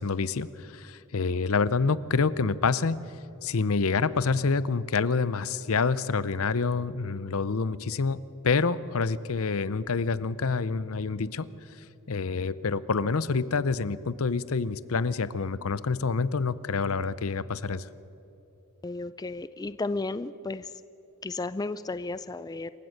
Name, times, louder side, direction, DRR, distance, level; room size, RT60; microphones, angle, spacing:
voice 1, 0.0-3.0 3.4-11.5 12.1-17.9, left 4 dB, 70° left, 17 dB, 0.7 m, -27 dB
voice 2, 18.8-20.7 21.2-22.7, left 3 dB, 15° left, 14 dB, 0.4 m, -33 dB
27.0 x 15.5 x 6.6 m, 2.9 s
head